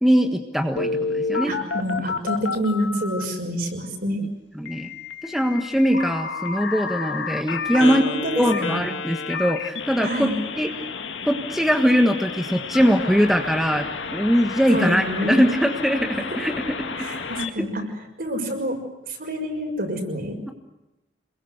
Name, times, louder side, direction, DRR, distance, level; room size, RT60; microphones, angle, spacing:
voice 1, 0.0-1.5 4.6-4.9 5.2-8.0 8.4-10.3 10.6-10.7 11.3-16.5, equal, ahead, 4 dB, 1.4 m, -21 dB
Telephone, 0.8-3.2 4.7-17.5, left 4 dB, 85° left, 2.0 m, -31 dB
voice 2, 1.5-4.2 7.7-8.8 10.0-10.3 14.7-15.5 17.0-17.8 18.2-18.8 19.1-20.4, equal, 55° right, 3 dB, 6.3 m, -27 dB
27.5 x 22.0 x 8.1 m, 0.99 s
head